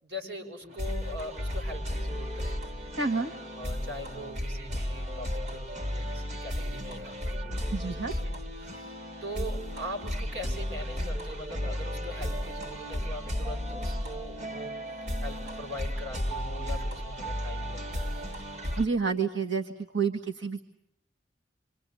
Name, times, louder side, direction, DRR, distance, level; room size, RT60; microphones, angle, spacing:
voice 1, 0.0-2.9 3.6-8.9 9.2-14.7 15.2-18.2, equal, 65° right, 2 dB, 6.7 m, -42 dB
sound 1, 0.6-18.9, equal, 40° right, 1.9 m, -34 dB
voice 2, 3.0-3.3 7.7-8.1 18.8-19.6 19.9-20.6, right 4 dB, 85° right, 4 dB, 1.7 m, -28 dB
27.0 x 27.0 x 8.3 m, 0.80 s
head